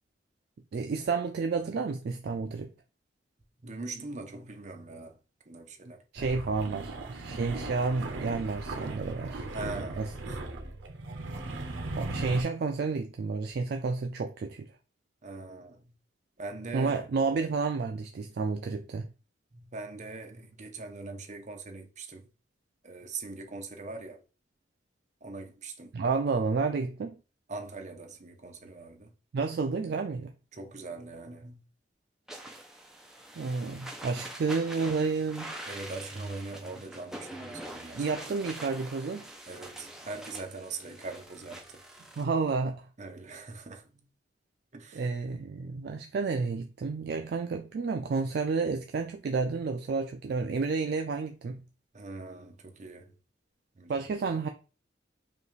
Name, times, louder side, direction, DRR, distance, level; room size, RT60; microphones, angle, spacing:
voice 1, 0.7-2.7 6.1-10.4 11.9-14.7 16.7-19.1 25.9-27.2 29.3-30.3 33.4-35.6 37.9-39.3 42.2-42.9 44.9-51.6 53.9-54.5, right 4 dB, 55° right, 0.3 m, -31 dB
voice 2, 3.6-5.2 5.5-6.0 9.5-10.4 15.2-15.9 16.4-16.9 19.5-22.3 22.8-24.2 25.2-25.9 27.5-29.1 30.5-31.6 35.7-38.1 39.5-41.8 43.0-44.1 44.7-45.1 51.9-53.1 53.8-54.1, right 3 dB, 40° right, 0.7 m, -42 dB
sound 1, 6.2-12.4, right 2 dB, 70° right, 0.8 m, -38 dB
sound 2, 32.3-42.2, right 1 dB, ahead, 0.6 m, -45 dB
5.2 x 2.4 x 3.2 m
head